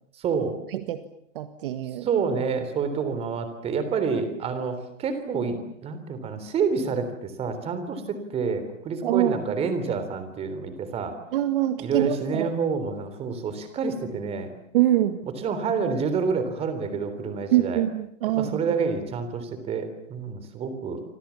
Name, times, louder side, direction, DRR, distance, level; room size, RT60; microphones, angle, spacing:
voice 1, 0.2-0.6 2.0-11.1 11.8-14.5 15.4-17.8 18.4-21.0, right 5 dB, 15° right, 10 dB, 3.5 m, -28 dB
voice 2, 1.4-2.1 9.0-9.3 11.3-12.5 14.7-15.2 17.5-18.6, right 13 dB, 45° right, 9 dB, 1.8 m, -24 dB
28.5 x 26.5 x 7.2 m, 0.68 s
supercardioid pair, 165°, 37 cm